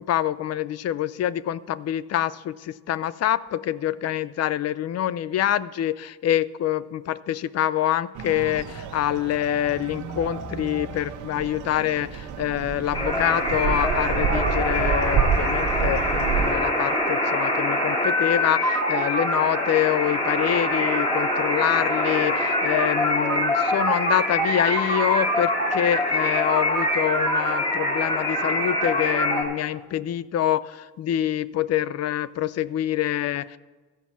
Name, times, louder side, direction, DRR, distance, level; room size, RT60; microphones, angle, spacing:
voice 1, 0.0-33.6, left 11 dB, 55° left, 18 dB, 0.5 m, -26 dB
sound 1, 8.2-16.5, right 7 dB, 75° right, 0.9 m, -29 dB
sound 2, 12.9-29.4, left 1 dB, 15° left, 3.3 m, -24 dB
14.0 x 5.4 x 7.3 m, 1.3 s
cardioid pair, 90°, 30 cm